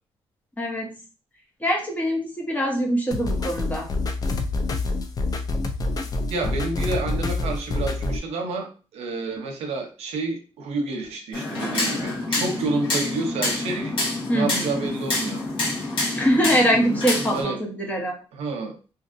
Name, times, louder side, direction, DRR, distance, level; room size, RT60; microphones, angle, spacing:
voice 1, 0.6-1.0 1.6-3.9 14.3-14.7 16.1-18.2, equal, 15° left, 0 dB, 0.8 m, -23 dB
sound 1, 3.1-8.2, left 2 dB, 35° left, 0.4 m, -27 dB
voice 2, 6.3-14.0 14.3-15.4 17.3-17.6 18.3-18.8, right 3 dB, 85° right, 3 dB, 0.7 m, -29 dB
sound 2, 11.3-17.4, left 2 dB, 55° left, 1.3 m, -27 dB
2.8 x 2.6 x 2.5 m, 0.35 s
cardioid pair, 145°, 11 cm